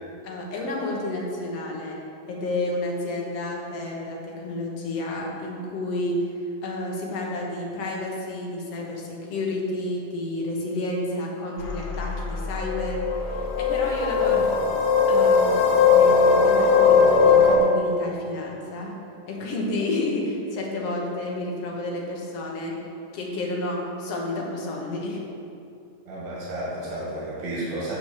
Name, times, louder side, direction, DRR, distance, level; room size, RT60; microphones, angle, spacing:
voice 1, 0.2-2.0 2.3-14.4 15.1-15.5 15.8-18.9 19.3-22.8 23.1-25.2, left 2 dB, 60° left, -2 dB, 2.1 m, -30 dB
sound 1, 11.6-17.6, left 5 dB, 90° left, 2.6 m, -19 dB
voice 2, 14.2-14.5 26.1-27.9, right 1 dB, 60° right, -7 dB, 3.0 m, -32 dB
8.0 x 6.2 x 6.6 m, 2.7 s
omnidirectional pair, 3.6 m